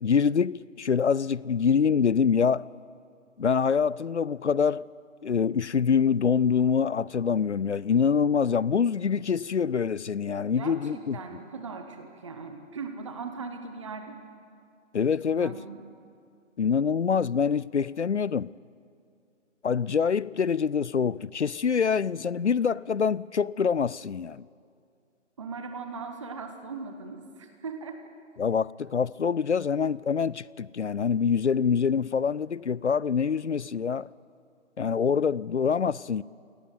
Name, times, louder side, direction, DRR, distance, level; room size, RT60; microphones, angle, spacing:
voice 1, 0.0-2.7 3.4-4.9 5.2-11.2 14.9-15.6 16.6-18.5 19.6-24.4 28.4-34.1 34.8-36.2, left 6 dB, 65° left, 0.5 m, -25 dB
voice 2, 10.6-14.2 15.3-15.8 25.4-28.0, right 4 dB, 25° right, 1.2 m, -39 dB
23.5 x 17.5 x 8.1 m
figure-of-eight pair, 150°, 38 cm